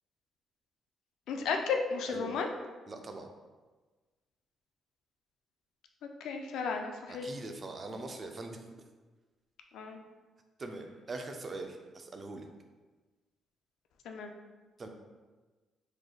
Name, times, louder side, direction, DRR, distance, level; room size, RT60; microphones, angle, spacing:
voice 1, 1.3-2.5 6.2-7.3 9.7-10.0 14.1-14.3, left 5 dB, 80° left, 4 dB, 0.4 m, -33 dB
voice 2, 2.9-3.3 7.1-8.6 10.6-12.5 14.8-14.9, right 2 dB, 35° right, 4 dB, 0.4 m, -42 dB
3.6 x 3.2 x 2.3 m, 1.3 s
cardioid pair, 90°, 0 cm